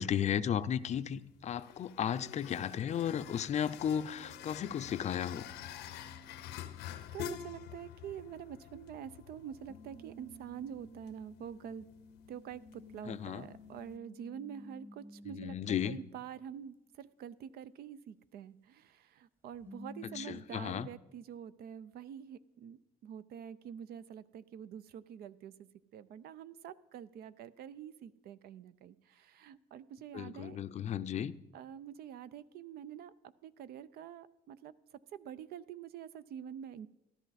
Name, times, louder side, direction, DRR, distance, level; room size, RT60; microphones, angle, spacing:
voice 1, 0.0-5.5 13.1-13.5 15.3-16.0 20.1-20.9 30.1-31.3, left 9 dB, 40° left, 0.5 m, -34 dB
sound 1, 0.6-14.0, left 10 dB, 90° left, 0.7 m, -49 dB
sound 2, 4.1-7.3 9.7-16.1 19.5-20.4, left 1 dB, 15° right, 1.2 m, -54 dB
voice 2, 7.1-11.9 12.3-30.6 31.5-33.1 33.4-34.7 35.1-36.9, right 9 dB, 65° right, 0.5 m, -46 dB
13.5 x 12.0 x 4.1 m
cardioid pair, 110°, 17 cm